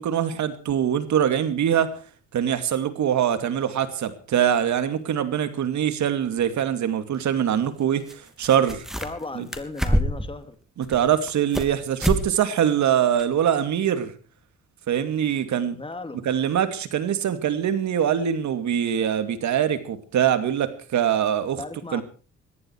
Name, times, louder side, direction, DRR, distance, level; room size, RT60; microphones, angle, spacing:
voice 1, 0.0-1.9 2.3-8.8 9.4-9.5 10.8-14.1 14.9-15.8 16.2-21.6 21.9-22.0, right 9 dB, 70° right, 11 dB, 2.6 m, -23 dB
sound 1, 8.1-8.2 8.4-9.2 9.5-10.3 10.8-11.7 12.0-12.3 12.6-12.7 13.2-13.3, equal, ahead, 3.0 m, -25 dB
voice 2, 9.0-10.6 15.7-16.2 21.6-22.0, left 3 dB, 20° left, 9 dB, 2.8 m, -35 dB
21.0 x 14.5 x 4.7 m, 0.38 s
cardioid pair, 90°, 30 cm